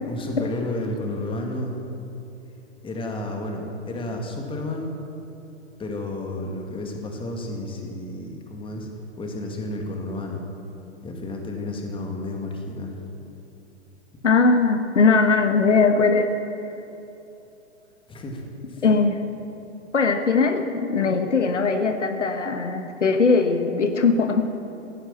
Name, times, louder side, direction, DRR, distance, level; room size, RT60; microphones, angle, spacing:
voice 1, 0.0-1.8 2.8-4.9 5.8-8.9 9.2-10.4 11.0-13.0 18.1-18.4 18.7-18.8, left 2 dB, 15° left, 2 dB, 2.2 m, -31 dB
voice 2, 14.2-16.3 18.8-19.2 19.9-24.5, left 4 dB, 80° left, 7 dB, 1.4 m, -20 dB
16.0 x 11.5 x 7.4 m, 2.9 s
figure-of-eight pair, 110°, 35 cm